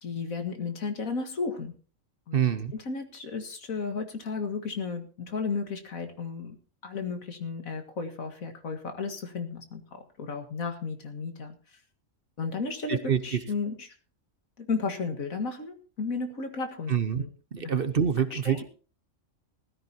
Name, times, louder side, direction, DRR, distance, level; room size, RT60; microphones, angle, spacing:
voice 1, 0.0-1.7 2.3-2.4 2.7-6.6 6.8-11.6 12.4-13.9 14.6-17.3 17.6-17.7 18.3-18.6, left 4 dB, 85° left, 6 dB, 2.2 m, -34 dB
voice 2, 2.3-2.7 12.9-13.4 16.9-17.2 17.5-18.6, right 8 dB, 45° right, 11 dB, 1.0 m, -26 dB
19.0 x 13.5 x 2.8 m, 0.38 s
omnidirectional pair, 1.4 m